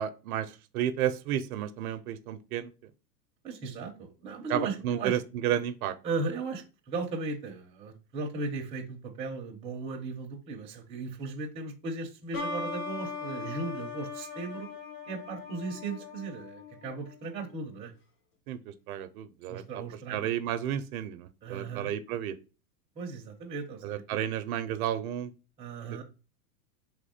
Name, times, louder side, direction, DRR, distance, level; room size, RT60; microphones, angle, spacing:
voice 1, 0.0-2.7 4.5-6.0 18.5-19.6 20.1-22.4 23.8-25.3 25.9-26.0, right 10 dB, 60° right, 10 dB, 0.5 m, -32 dB
voice 2, 3.4-5.2 6.0-14.7 15.1-17.9 19.5-20.3 21.4-21.9 23.0-24.2 25.6-26.0, right 3 dB, 10° right, 0 dB, 0.5 m, -37 dB
sound 1, 12.3-17.8, left 4 dB, 65° left, 1.8 m, -40 dB
3.6 x 3.0 x 4.0 m, 0.32 s
supercardioid pair, 140°, 50 cm